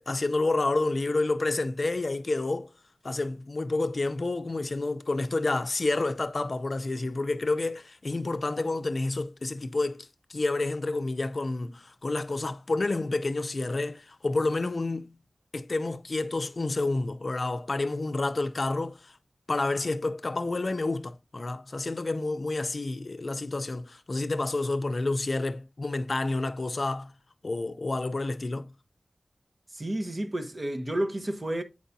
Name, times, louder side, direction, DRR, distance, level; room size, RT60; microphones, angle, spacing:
voice 1, 0.0-2.7 3.0-15.2 15.5-19.1 19.5-27.1 27.4-28.7, left 2 dB, 55° left, 0.5 m, -29 dB
voice 2, 29.7-31.6, right 1 dB, 35° right, 0.9 m, -31 dB
8.2 x 4.7 x 2.6 m
wide cardioid pair, 80°, 0 cm